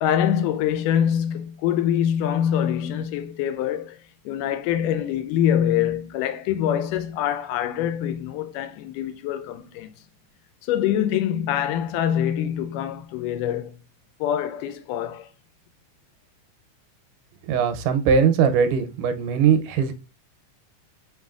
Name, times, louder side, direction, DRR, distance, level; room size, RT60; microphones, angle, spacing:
voice 1, 0.0-9.9 10.6-13.8 14.2-15.3, left 10 dB, 90° left, 2.2 m, -24 dB
voice 2, 17.4-19.9, right 6 dB, 85° right, 2.2 m, -20 dB
4.9 x 4.0 x 2.3 m
omnidirectional pair, 3.7 m